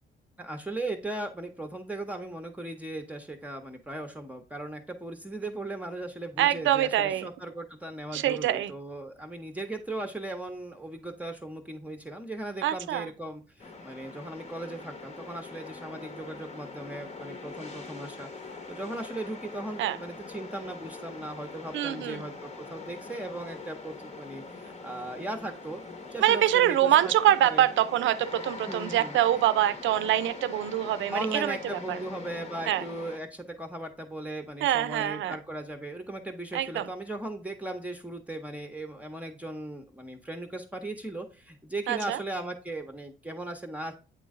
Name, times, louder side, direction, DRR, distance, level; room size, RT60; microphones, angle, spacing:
voice 1, 0.4-18.3 18.7-25.8 26.1-27.1 27.5-27.6 28.6-29.2 31.1-43.9, right 2 dB, 5° right, 0.8 m, -37 dB
voice 2, 6.4-7.3 8.1-8.7 12.6-13.1 19.8-20.0 21.7-22.2 26.2-32.0 32.7-32.8 34.6-35.4 36.5-36.9 41.9-42.2, right 12 dB, 75° right, 0.6 m, -25 dB
sound 1, 13.6-33.2, left 3 dB, 35° left, 1.1 m, -43 dB
8.5 x 3.1 x 3.6 m
cardioid pair, 90°, 20 cm